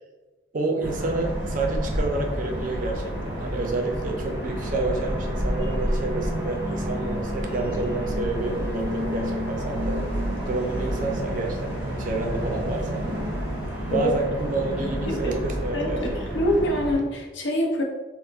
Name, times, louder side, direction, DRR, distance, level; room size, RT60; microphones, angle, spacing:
voice 1, 0.5-13.1 13.9-16.2, right 2 dB, 45° right, 2 dB, 0.4 m, -29 dB
sound 1, 0.8-17.0, equal, 5° right, 0.7 m, -29 dB
voice 2, 15.1-15.4 15.7-17.8, equal, 70° left, 1 dB, 0.6 m, -25 dB
4.1 x 2.1 x 2.4 m, 1.2 s
head